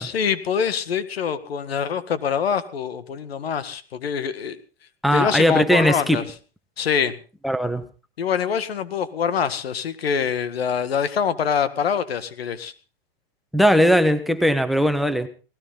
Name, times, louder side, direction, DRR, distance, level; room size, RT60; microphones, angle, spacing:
voice 1, 0.0-4.6 5.1-6.2 6.8-7.2 8.2-12.7, left 7 dB, 90° left, 13 dB, 1.8 m, -25 dB
voice 2, 5.0-6.2 7.4-7.8 13.5-15.3, equal, ahead, 12 dB, 1.2 m, -19 dB
18.5 x 17.0 x 3.9 m, 0.35 s
hypercardioid pair, 125°, 30 cm